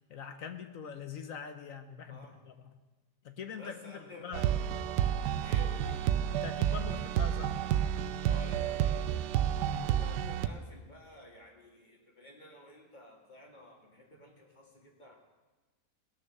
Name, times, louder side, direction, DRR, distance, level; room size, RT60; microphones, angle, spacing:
voice 1, 0.1-2.2 2.4-2.7 3.2-4.5 6.3-7.5 9.6-9.9, left 7 dB, 60° left, 8 dB, 1.1 m, -43 dB
voice 2, 3.6-4.4 5.4-6.0 8.2-9.2 9.7-15.2, left 1 dB, 30° left, -1 dB, 2.2 m, -52 dB
sound 1, 4.3-10.5, right 10 dB, 85° right, 1.2 m, -30 dB
18.5 x 6.8 x 6.6 m, 1.2 s
omnidirectional pair, 1.7 m